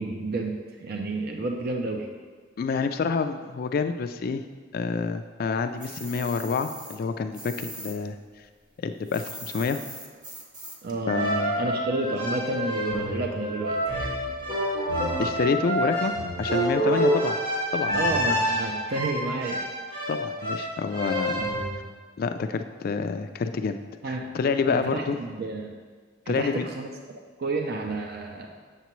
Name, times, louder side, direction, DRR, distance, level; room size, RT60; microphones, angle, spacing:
voice 1, 0.0-2.1 10.8-14.1 17.9-19.7 24.0-24.3 24.7-25.7 26.3-28.5, right 2 dB, 55° right, 2 dB, 0.5 m, -31 dB
voice 2, 2.6-4.4 4.7-8.2 8.8-9.8 11.1-11.5 15.2-16.1 16.4-17.4 17.7-18.0 20.1-21.5 22.2-23.8 24.1-25.2 26.3-26.6, left 5 dB, 55° left, 8 dB, 0.3 m, -28 dB
sound 1, 5.8-8.0 8.2-11.0, right 2 dB, 25° right, 0.8 m, -41 dB
sound 2, 11.1-21.7, equal, 90° right, 2.3 m, -27 dB
8.1 x 6.6 x 3.1 m, 1.5 s
head